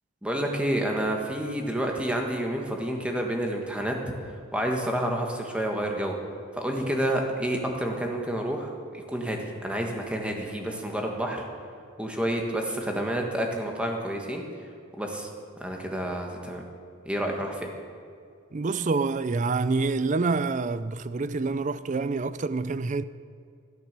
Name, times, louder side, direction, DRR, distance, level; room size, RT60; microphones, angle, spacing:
voice 1, 0.2-3.9 4.5-6.1 6.5-11.4 12.0-14.4 14.9-15.3 15.6-16.6 17.0-17.7, right 1 dB, 5° right, 1.6 m, -29 dB
voice 2, 18.5-23.0, right 3 dB, 35° right, 0.4 m, -27 dB
13.5 x 12.5 x 6.7 m
head